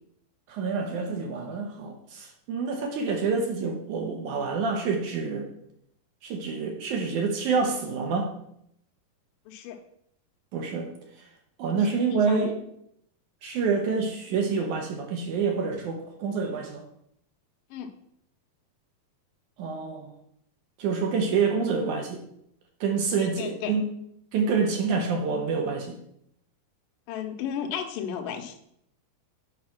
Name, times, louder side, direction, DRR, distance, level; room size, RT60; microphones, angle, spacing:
voice 1, 0.5-5.5 6.2-8.3 10.5-11.3 11.6-12.6 13.4-16.8 19.6-20.1 20.8-22.2 22.8-23.8 24.3-26.0, right 5 dB, 70° right, 3 dB, 2.1 m, -27 dB
voice 2, 9.5-9.8 12.1-12.5 17.7-17.9 23.2-23.7 27.1-28.6, left 8 dB, 70° left, 4 dB, 2.3 m, -34 dB
9.6 x 5.2 x 5.9 m, 0.73 s
omnidirectional pair, 4.6 m